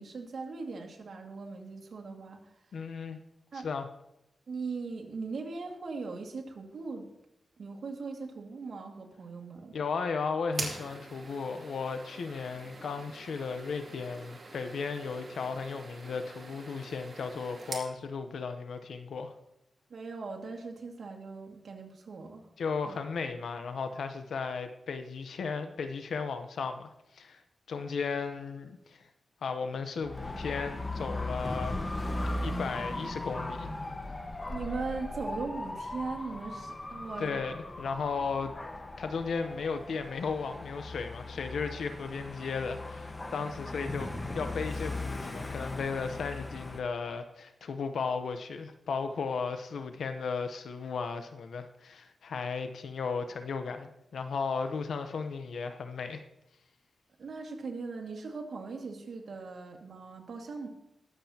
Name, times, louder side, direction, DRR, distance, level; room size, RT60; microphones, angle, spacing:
voice 1, 0.0-2.5 3.5-3.7 4.5-7.1 7.6-9.8 19.9-22.5 22.8-23.0 34.5-37.3 57.2-60.7, right 4 dB, 70° right, 2 dB, 2.1 m, -39 dB
voice 2, 2.7-3.2 3.5-3.9 9.7-19.3 22.6-27.4 27.7-29.1 29.4-31.8 32.4-33.8 34.1-34.3 37.2-38.5 39.0-56.2, left 5 dB, 85° left, 8 dB, 0.8 m, -35 dB
sound 1, 10.5-17.9, right 3 dB, 50° right, 2.5 m, -44 dB
Dog / Motorcycle, 30.0-46.8, left 2 dB, 25° left, 1.3 m, -38 dB
21.0 x 7.7 x 2.9 m, 0.84 s
wide cardioid pair, 90°, 0 cm